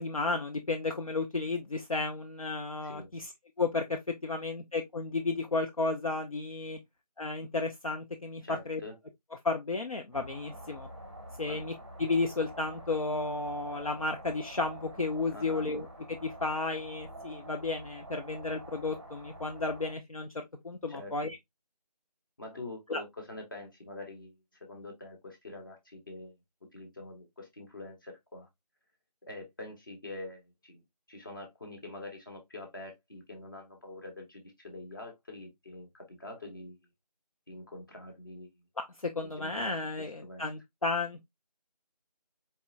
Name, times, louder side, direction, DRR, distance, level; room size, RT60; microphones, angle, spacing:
voice 1, 0.0-3.3 3.6-6.8 7.2-8.8 9.4-10.9 11.4-11.7 12.0-20.3 20.6-21.4 22.9-23.0 39.0-41.3, left 3 dB, 55° left, 0.6 m, -33 dB
voice 2, 8.4-8.9 11.5-11.7 15.3-15.7 20.9-21.4 22.4-26.4 26.7-28.5 29.3-30.8 31.1-36.8 37.5-38.6 39.2-40.5, left 2 dB, 30° left, 1.1 m, -45 dB
sound 1, 10.1-19.9, right 1 dB, 15° right, 0.8 m, -47 dB
4.2 x 3.5 x 2.5 m
figure-of-eight pair, 165°, 21 cm